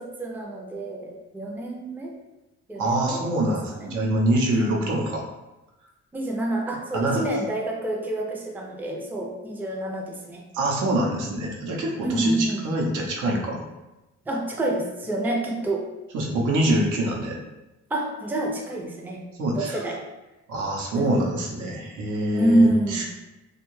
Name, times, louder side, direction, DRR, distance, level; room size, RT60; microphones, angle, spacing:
voice 1, 0.0-2.1 2.7-3.2 3.7-3.9 4.5-4.9 6.1-10.4 12.0-12.7 14.3-15.9 17.9-19.2 19.5-20.0 20.9-21.3 22.3-23.0, right 1 dB, 5° right, -1 dB, 0.4 m, -27 dB
voice 2, 2.8-5.2 6.9-7.3 10.5-13.6 16.1-17.4 19.4-19.8 20.5-23.0, right 1 dB, 80° right, -1 dB, 0.7 m, -25 dB
2.6 x 2.2 x 3.0 m, 1.0 s
cardioid pair, 90°, 30 cm